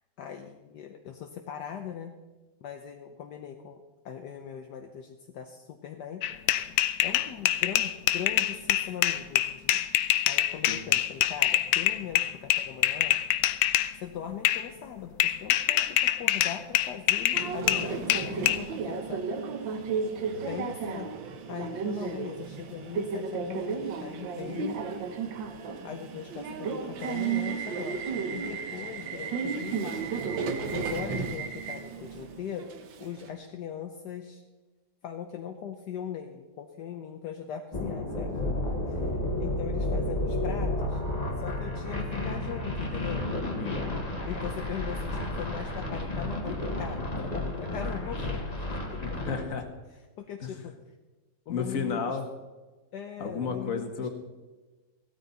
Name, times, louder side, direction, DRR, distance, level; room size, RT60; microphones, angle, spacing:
voice 1, 0.2-2.1 2.6-6.2 7.0-9.8 10.3-13.2 14.0-19.3 20.4-21.1 21.5-24.8 25.8-30.0 30.7-32.7 33.0-34.4 35.0-38.3 38.9-41.0 41.4-43.2 44.2-48.4 48.7-49.0 50.2-50.7 51.5-52.2 52.9-54.1, left 8 dB, 70° left, 4 dB, 1.4 m, -40 dB
sound 1, 6.2-13.9 14.4-14.7 15.2-18.6, left 12 dB, 90° left, 1.3 m, -25 dB
Subway metro underground, 17.3-33.3, right 5 dB, 90° right, 1.8 m, -33 dB
sound 2, 37.7-49.4, left 1 dB, 20° left, 1.7 m, -31 dB
voice 2, 43.5-44.1 49.0-49.7 50.4-50.7 51.5-52.2 53.2-54.1, left 5 dB, 50° left, 6 dB, 1.7 m, -33 dB
16.0 x 13.0 x 4.1 m, 1.2 s
omnidirectional pair, 2.0 m